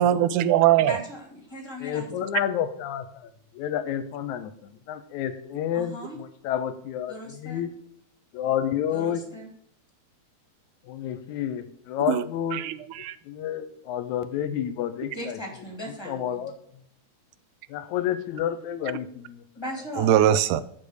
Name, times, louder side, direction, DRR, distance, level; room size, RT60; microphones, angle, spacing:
voice 1, 0.0-1.0 12.1-12.2 12.5-13.1 20.0-20.6, right 11 dB, 85° right, 2.0 m, -21 dB
voice 2, 0.8-2.1 5.7-6.2 7.1-7.6 8.9-9.5 15.1-16.4 19.6-20.2, equal, 10° left, 2.0 m, -38 dB
voice 3, 1.8-3.1 3.5-7.7 8.3-9.2 10.9-12.6 13.3-15.4 16.1-16.5 17.7-19.4, left 10 dB, 80° left, 2.0 m, -30 dB
7.6 x 6.9 x 6.5 m
omnidirectional pair, 3.5 m